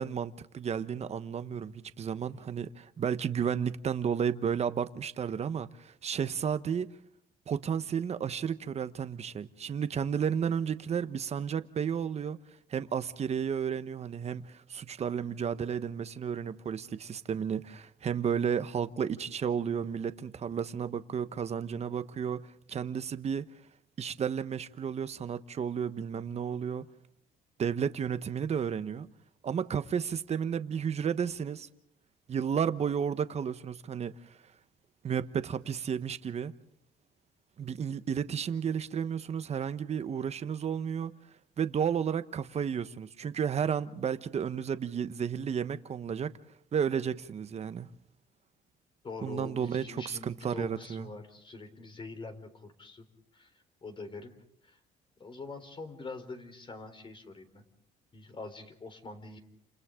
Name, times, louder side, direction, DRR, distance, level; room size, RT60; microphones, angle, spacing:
voice 1, 0.0-6.9 7.5-12.4 12.7-23.5 24.0-26.9 27.6-29.1 29.4-31.7 32.3-34.3 35.0-36.5 37.6-41.1 41.6-46.3 46.7-47.9 49.2-51.1, right 7 dB, 40° right, 1.2 m, -32 dB
voice 2, 49.0-53.1 53.3-53.5 53.8-54.3 54.6-54.8 55.2-57.6 58.1-59.4, left 3 dB, 30° left, 3.8 m, -44 dB
30.0 x 28.0 x 3.8 m
cardioid pair, 110°, 17 cm